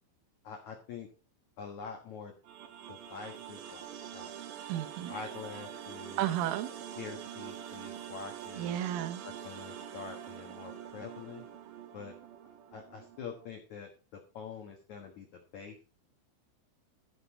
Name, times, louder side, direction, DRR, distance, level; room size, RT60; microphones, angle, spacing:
voice 1, 0.4-1.1 1.6-2.3 2.9-4.4 5.1-6.3 7.0-8.8 9.2-11.4 11.9-12.2 12.4-15.8, left 6 dB, 70° left, 1.8 m, -45 dB
sound 1, 2.4-13.5, right 10 dB, 75° right, 2.0 m, -45 dB
voice 2, 4.7-5.1 6.2-6.7 8.6-9.2, right 12 dB, 90° right, 3.5 m, -33 dB
15.0 x 6.8 x 4.2 m
omnidirectional pair, 5.5 m